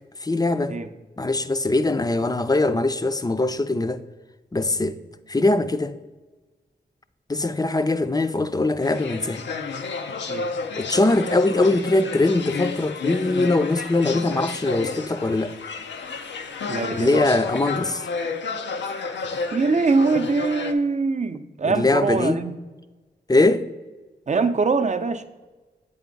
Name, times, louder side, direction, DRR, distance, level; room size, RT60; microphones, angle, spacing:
voice 1, 0.2-0.8 1.2-4.0 4.5-5.0 5.3-6.0 7.3-9.4 10.8-15.6 16.9-18.0 21.6-22.4 23.3-23.7, left 2 dB, 20° left, 0.5 m, -22 dB
sound 1, 8.8-20.7, left 4 dB, 90° left, 0.6 m, -31 dB
voice 2, 16.7-17.2 19.5-22.6 24.3-25.2, right 4 dB, 40° right, 0.6 m, -23 dB
8.3 x 3.6 x 5.2 m
cardioid pair, 50°, 18 cm